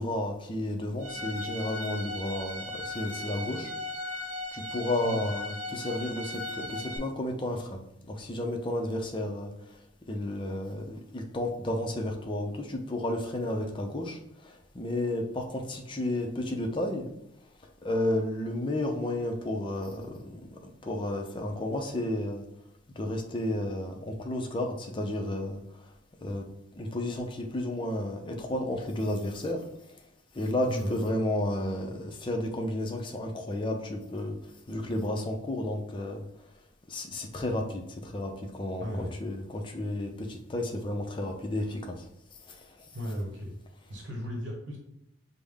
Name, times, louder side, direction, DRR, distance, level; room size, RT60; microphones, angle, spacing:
voice 1, 0.0-3.7 4.5-7.8 8.1-9.5 10.1-17.0 17.8-20.4 20.8-22.4 23.0-25.6 26.2-26.4 26.8-29.6 30.3-34.4 34.7-36.2 36.9-42.0 42.5-42.6, left 1 dB, 25° left, 2 dB, 0.5 m, -32 dB
Bowed string instrument, 1.0-7.0, left 1 dB, 35° right, 0.6 m, -37 dB
voice 2, 38.8-39.1 42.9-43.5 43.9-44.8, equal, 65° right, -1 dB, 0.9 m, -35 dB
5.2 x 2.1 x 3.4 m, 0.78 s
head